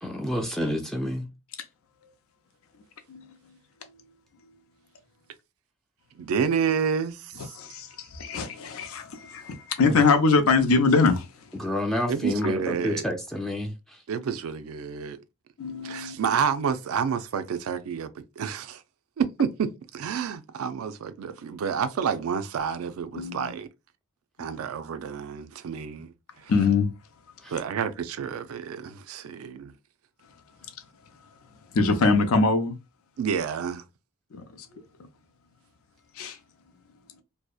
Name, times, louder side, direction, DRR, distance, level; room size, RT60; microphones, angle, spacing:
voice 1, 0.0-1.3 9.9-10.0 11.5-14.0 27.4-27.5 34.7-34.8, left 1 dB, ahead, 0.3 m, -29 dB
voice 2, 6.1-7.5 12.1-13.0 14.1-15.2 15.8-18.8 19.2-23.7 24.4-26.5 27.5-29.7 33.2-33.9, right 6 dB, 90° right, 0.4 m, -29 dB
voice 3, 7.6-11.3 15.6-16.3 23.1-23.5 24.4-24.5 26.5-26.9 31.7-32.8 34.3-34.4 36.2-36.4, left 4 dB, 90° left, 0.5 m, -23 dB
2.7 x 2.1 x 2.3 m
head